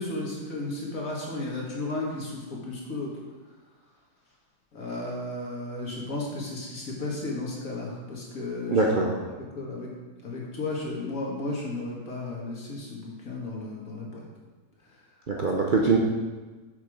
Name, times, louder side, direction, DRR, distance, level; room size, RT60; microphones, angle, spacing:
voice 1, 0.0-3.1 4.7-8.8 9.3-9.9 10.2-14.2, left 2 dB, 50° left, -3 dB, 2.1 m, -34 dB
voice 2, 8.7-9.2 15.3-16.0, right 3 dB, 75° right, -1 dB, 0.4 m, -23 dB
7.1 x 6.2 x 4.8 m, 1.3 s
omnidirectional pair, 1.9 m